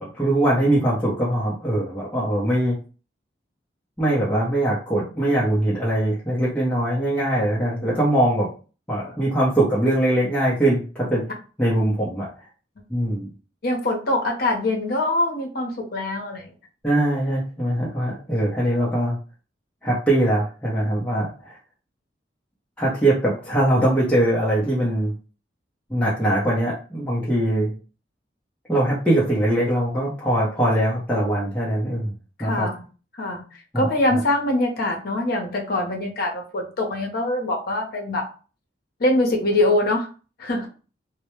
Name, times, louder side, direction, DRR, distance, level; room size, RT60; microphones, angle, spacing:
voice 1, 0.0-2.8 4.0-8.5 8.9-11.2 11.6-12.3 12.9-13.3 16.8-19.2 19.8-21.5 22.8-25.1 25.9-27.7 28.7-32.1 32.4-32.7 33.7-34.2, right 1 dB, 5° left, -7 dB, 0.5 m, -22 dB
voice 2, 13.6-16.5 32.4-32.8 33.2-33.4 33.7-38.2 39.0-40.1 40.4-40.7, left 1 dB, 55° left, 1 dB, 0.7 m, -23 dB
2.1 x 2.0 x 2.9 m, 0.36 s
head